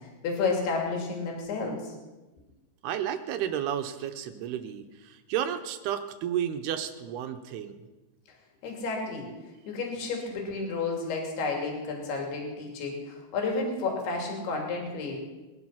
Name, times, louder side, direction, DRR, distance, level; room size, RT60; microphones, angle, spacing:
voice 1, 0.2-1.8 8.6-9.3 9.7-15.1, left 4 dB, 65° left, 0 dB, 4.9 m, -31 dB
voice 2, 2.8-7.8, right 10 dB, 75° right, 8 dB, 2.7 m, -32 dB
22.5 x 11.0 x 5.9 m, 1.2 s
omnidirectional pair, 5.1 m